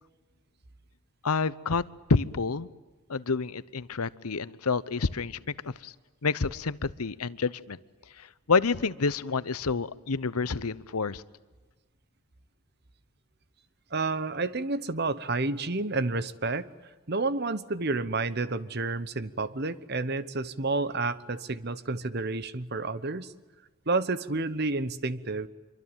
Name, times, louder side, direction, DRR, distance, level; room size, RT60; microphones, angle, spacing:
voice 1, 1.2-1.8 2.1-2.7 3.1-5.4 5.6-5.9 6.2-7.8 8.2-11.2, left 4 dB, 85° left, 18 dB, 0.9 m, -28 dB
voice 2, 13.9-16.7 17.1-23.3 23.9-25.5, right 3 dB, 45° right, 15 dB, 1.0 m, -30 dB
26.0 x 24.0 x 9.1 m, 1.3 s
head